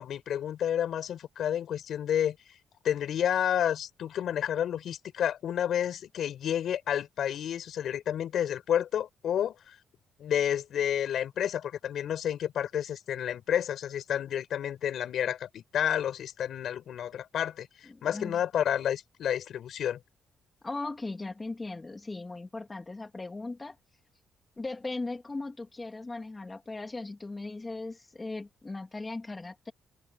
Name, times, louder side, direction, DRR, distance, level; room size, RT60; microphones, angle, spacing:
voice 1, 0.0-2.4 2.8-9.7 10.2-20.0, left 10 dB, 70° left, 5.1 m, -30 dB
voice 2, 17.9-18.4 20.6-23.8 24.6-29.7, left 3 dB, 20° left, 2.5 m, -38 dB
cardioid pair, 90°, 0 cm